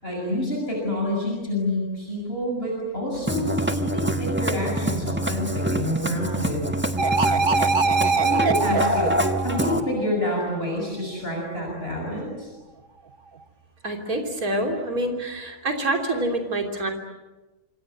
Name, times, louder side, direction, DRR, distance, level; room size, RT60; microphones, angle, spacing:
voice 1, 0.0-6.7 8.2-12.5, left 1 dB, 45° left, -1 dB, 6.8 m, -28 dB
Musical instrument, 3.1-9.8, right 1 dB, 10° right, 1.3 m, -26 dB
sound 1, 7.0-10.3, right 4 dB, 40° right, 1.5 m, -23 dB
voice 2, 13.8-16.9, right 1 dB, 85° right, 3 dB, 3.7 m, -26 dB
27.0 x 26.5 x 8.1 m, 1.1 s
omnidirectional pair, 1.5 m